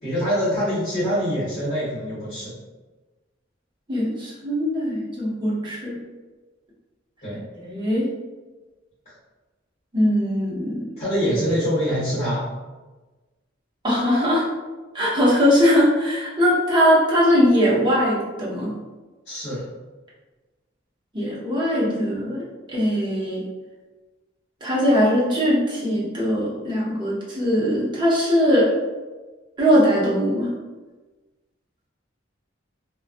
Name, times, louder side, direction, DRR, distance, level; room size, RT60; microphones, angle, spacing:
voice 1, 0.0-2.5 7.2-7.4 11.0-12.5 19.3-19.6, equal, 35° left, -13 dB, 1.1 m, -24 dB
voice 2, 3.9-5.9 7.5-8.1 9.9-10.8 13.8-14.4 14.9-18.8 21.1-22.4 22.7-23.4 24.6-28.7 29.6-30.5, equal, 25° right, -6 dB, 0.7 m, -20 dB
2.4 x 2.2 x 2.4 m, 1.2 s
head